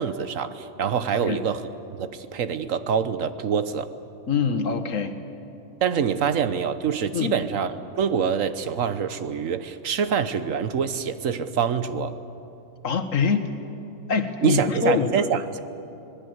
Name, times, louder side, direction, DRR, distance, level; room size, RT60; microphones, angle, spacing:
voice 1, 0.0-1.7 2.0-3.9 5.8-12.1 14.4-15.6, right 7 dB, 90° right, 11 dB, 1.4 m, -25 dB
voice 2, 4.3-5.1 7.1-7.4 12.8-13.5 14.1-15.1, left 5 dB, 90° left, 8 dB, 1.7 m, -24 dB
26.0 x 19.0 x 8.0 m, 3.0 s
omnidirectional pair, 1.3 m